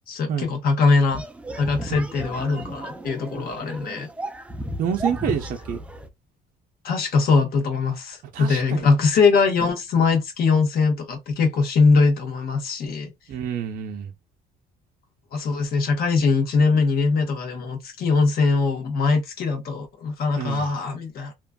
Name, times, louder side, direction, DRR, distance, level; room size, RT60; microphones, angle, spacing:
voice 1, 0.1-1.2 1.6-4.1 6.8-13.1 15.3-21.3, left 4 dB, 60° left, 1.3 m, -21 dB
sound 1, 1.1-6.1, right 1 dB, 5° right, 0.4 m, -34 dB
voice 2, 4.8-5.8 8.3-8.9 13.3-14.1 20.4-20.7, right 8 dB, 55° right, 0.6 m, -28 dB
2.9 x 2.4 x 2.3 m
cardioid pair, 110°, 17 cm